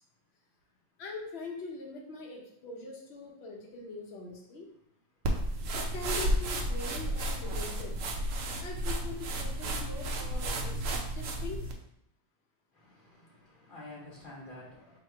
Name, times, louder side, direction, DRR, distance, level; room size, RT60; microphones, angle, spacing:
voice 1, 1.0-4.7 5.7-7.9 8.6-11.7, left 2 dB, 55° left, 0.7 m, -42 dB
sound 1, 5.2-11.7, right 1 dB, 80° right, 0.7 m, -32 dB
voice 2, 12.7-15.0, left 2 dB, 35° left, 1.2 m, -49 dB
3.0 x 3.0 x 4.4 m
omnidirectional pair, 2.0 m